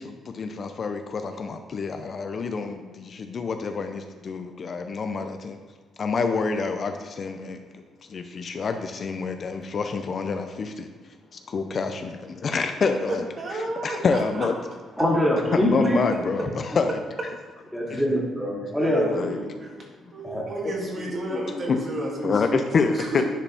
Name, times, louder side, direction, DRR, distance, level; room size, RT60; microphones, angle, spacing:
voice 1, 0.0-5.6 6.0-10.9 11.3-13.2 13.8-14.5 15.5-17.0 17.9-18.0 19.1-19.4 21.0-21.1 21.5-21.8 22.2-23.2, left 4 dB, 50° left, 7 dB, 0.6 m, -27 dB
voice 2, 12.8-14.5 15.0-15.1 15.5-15.9 17.9-18.0 18.8-19.7 20.1-22.6 22.9-23.2, right 1 dB, 40° right, -2 dB, 2.2 m, -32 dB
voice 3, 15.0-16.0 17.7-19.0 20.2-20.5, equal, ahead, -4 dB, 2.4 m, -23 dB
10.0 x 4.9 x 3.5 m, 1.5 s
cardioid pair, 90°, 0 cm